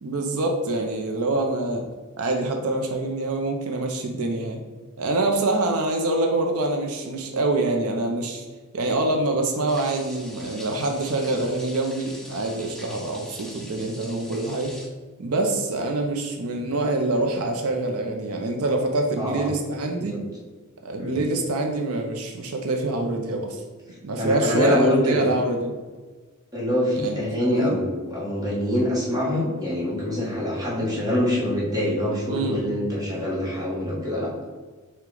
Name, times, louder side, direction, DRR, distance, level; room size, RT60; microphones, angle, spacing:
voice 1, 0.0-1.9 2.2-4.6 5.0-8.5 8.7-14.7 15.2-20.2 20.8-23.6 24.0-25.7 27.0-27.8 32.3-32.6, right 2 dB, 75° right, 3 dB, 0.6 m, -25 dB
sound 1, 9.7-14.9, left 1 dB, ahead, 0.5 m, -43 dB
voice 2, 19.2-19.5 20.0-20.2 21.0-21.2 24.2-25.3 26.5-34.3, left 1 dB, 15° right, -5 dB, 1.2 m, -25 dB
5.8 x 2.3 x 3.8 m, 1.3 s
head